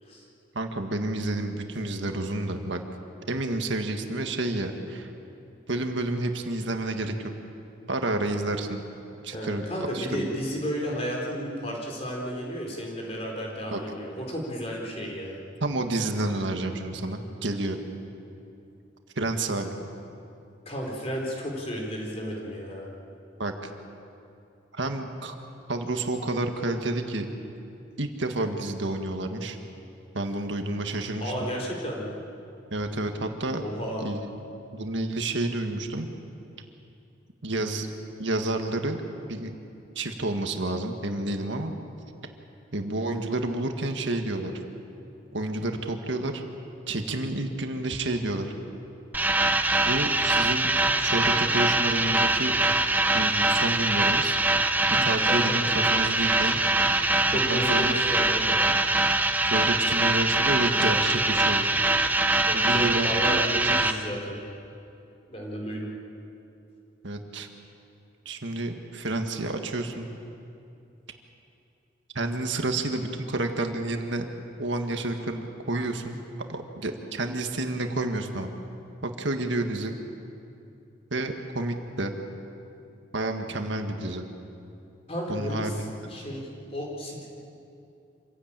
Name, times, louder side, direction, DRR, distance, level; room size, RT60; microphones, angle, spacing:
voice 1, 0.5-2.8 3.3-5.1 5.7-7.3 7.9-8.8 9.2-9.6 9.9-10.3 13.7-13.8 15.6-17.8 19.1-19.7 23.4-23.7 24.7-25.3 25.7-27.3 28.0-29.6 30.1-31.5 32.7-33.6 34.0-34.4 34.7-36.1 37.4-37.9 38.2-39.0 39.3-39.5 39.9-41.7 42.7-44.5 45.3-46.4 46.9-48.5 49.8-50.7 51.0-52.6 53.1-54.4 55.0-56.6 57.3-58.0 59.4-61.7 62.0-62.1 62.5-63.8 67.0-67.5 68.2-70.1 72.1-74.3 74.6-76.1 76.5-78.5 79.0-79.9 81.1-82.1 83.1-84.2 85.3-85.9, right 2 dB, 70° right, 4 dB, 1.7 m, -30 dB
voice 2, 9.3-15.4 20.7-22.9 31.2-32.1 33.6-34.0 55.2-55.6 57.3-58.6 62.5-64.4 65.3-65.9 85.1-85.7 86.1-87.3, equal, 30° left, -2 dB, 4.4 m, -33 dB
sound 1, 49.1-63.9, right 2 dB, 10° right, 0.8 m, -23 dB
26.5 x 16.5 x 9.0 m, 2.7 s
head